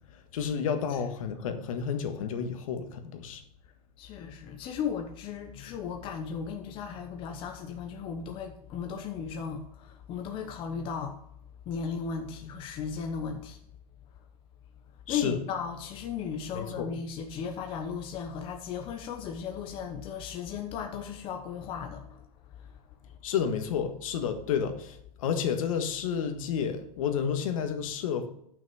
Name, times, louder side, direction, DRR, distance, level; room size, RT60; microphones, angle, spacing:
voice 1, 0.3-3.4 15.1-15.4 16.5-16.9 23.2-28.3, left 7 dB, 60° left, 7 dB, 1.6 m, -31 dB
voice 2, 0.9-1.4 4.0-11.2 11.7-13.6 15.1-22.2 22.6-22.8, left 6 dB, 25° left, 4 dB, 0.9 m, -36 dB
11.0 x 6.1 x 4.8 m, 0.70 s
hypercardioid pair, 150°, 20 cm